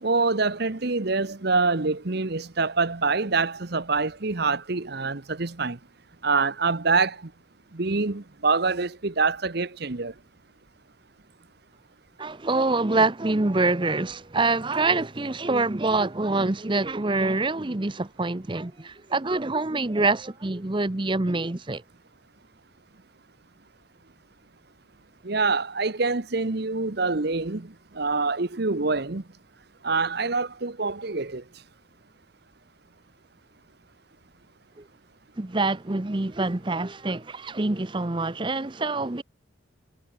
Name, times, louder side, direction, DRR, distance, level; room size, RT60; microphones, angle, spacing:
voice 1, 0.0-5.8 6.2-7.2 7.7-10.1 25.2-27.7 28.0-29.2 29.8-31.4, right 4 dB, 50° right, 1.0 m, -25 dB
voice 2, 12.2-21.8 34.8-34.9 35.4-39.2, right 3 dB, 25° right, 0.7 m, -25 dB
head